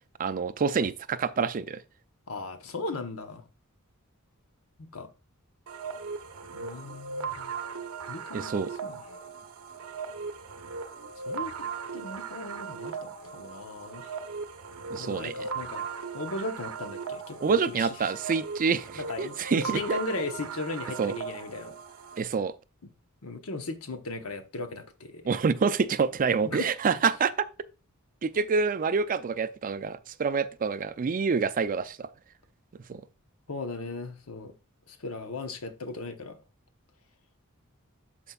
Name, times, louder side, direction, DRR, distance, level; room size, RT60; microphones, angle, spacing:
voice 1, 0.2-1.8 8.3-8.7 14.9-15.3 17.4-20.0 21.0-21.1 22.2-22.5 25.3-27.5 28.2-32.1 32.9-33.0, right 5 dB, 40° right, 0.4 m, -27 dB
voice 2, 2.3-3.4 4.8-5.1 6.5-7.6 8.1-9.0 11.2-11.7 11.9-14.2 14.9-15.9 16.1-18.1 18.9-21.7 23.2-25.3 26.4-26.7 33.5-34.5 34.9-36.4, left 3 dB, 70° left, 1.0 m, -37 dB
sound 1, 5.7-22.2, right 5 dB, 75° right, 0.8 m, -38 dB
12.5 x 4.5 x 2.3 m
head